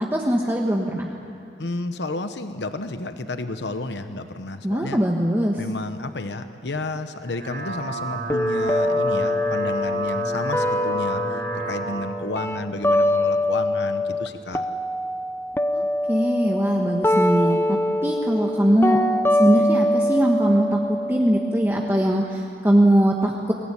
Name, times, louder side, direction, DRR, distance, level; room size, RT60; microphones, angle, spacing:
voice 1, 0.1-1.1 4.6-5.6 15.7-19.0 19.3-23.5, equal, 15° right, -1 dB, 1.4 m, -21 dB
voice 2, 1.6-5.0 5.6-11.4 11.7-14.7, left 2 dB, 80° left, 9 dB, 1.0 m, -31 dB
sound 1, 7.1-12.1, right 3 dB, 55° right, 7.3 m, -31 dB
sound 2, 8.3-14.3 14.5-22.3, left 1 dB, 15° left, 0.7 m, -24 dB
23.0 x 19.5 x 10.0 m, 2.5 s
head